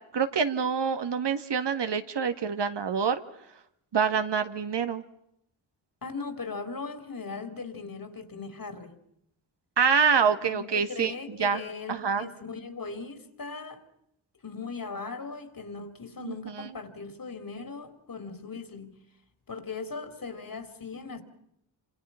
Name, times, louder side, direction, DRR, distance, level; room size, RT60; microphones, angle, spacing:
voice 1, 0.1-3.2 3.9-5.0 9.8-11.6 11.9-12.3 16.2-16.7, right 6 dB, 60° right, 8 dB, 1.8 m, -26 dB
voice 2, 6.0-8.9 10.4-13.8 14.4-19.0 19.5-21.2, left 4 dB, 45° left, 8 dB, 3.7 m, -39 dB
27.5 x 26.5 x 5.7 m, 0.77 s
supercardioid pair, 45°, 46 cm